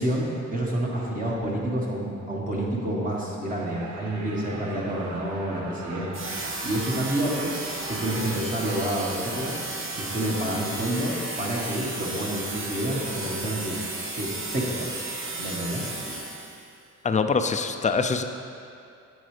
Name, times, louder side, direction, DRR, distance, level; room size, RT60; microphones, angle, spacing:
voice 1, 0.0-6.2 6.6-7.6 7.9-9.6 10.0-16.2, right 1 dB, 25° right, -4 dB, 1.4 m, -29 dB
sound 1, 3.5-8.5, right 3 dB, 65° right, 1.0 m, -42 dB
sound 2, 6.1-16.7, right 2 dB, 45° right, 1.3 m, -34 dB
voice 2, 17.0-18.2, left 4 dB, 25° left, 7 dB, 0.4 m, -24 dB
8.0 x 7.8 x 3.3 m, 2.5 s
cardioid pair, 90°, 30 cm